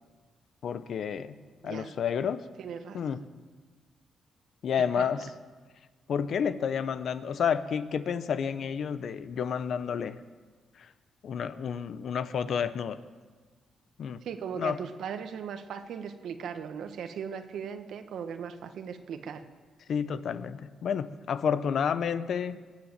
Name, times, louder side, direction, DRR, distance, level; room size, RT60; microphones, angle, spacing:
voice 1, 0.6-2.4 2.9-3.2 4.6-5.3 6.1-10.2 10.8-10.9 11.2-13.0 14.0-14.2 14.6-14.8 19.9-22.6, left 7 dB, 70° left, 13 dB, 0.8 m, -30 dB
voice 2, 1.6-1.9 2.6-3.0 4.8-5.3 14.2-19.4, right 7 dB, 75° right, 8 dB, 1.2 m, -38 dB
21.5 x 7.4 x 9.1 m, 1.4 s
cardioid pair, 70°, 0 cm